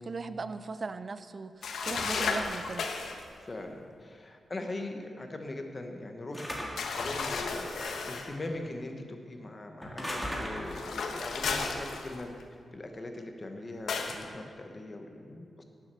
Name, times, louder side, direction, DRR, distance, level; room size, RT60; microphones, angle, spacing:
voice 1, 0.0-2.9, right 4 dB, 35° right, 12 dB, 0.5 m, -38 dB
sound 1, 1.6-3.2 6.8-8.3 10.7-12.4 13.9-14.2, left 4 dB, 75° left, 1.2 m, -33 dB
voice 2, 3.4-12.3 12.7-15.6, left 2 dB, 25° left, 4 dB, 1.2 m, -41 dB
sound 2, 6.3-7.0 7.7-8.2 9.8-10.9, equal, 5° left, 1.9 m, -38 dB
17.5 x 7.5 x 6.9 m, 2.2 s
wide cardioid pair, 180°, 0 cm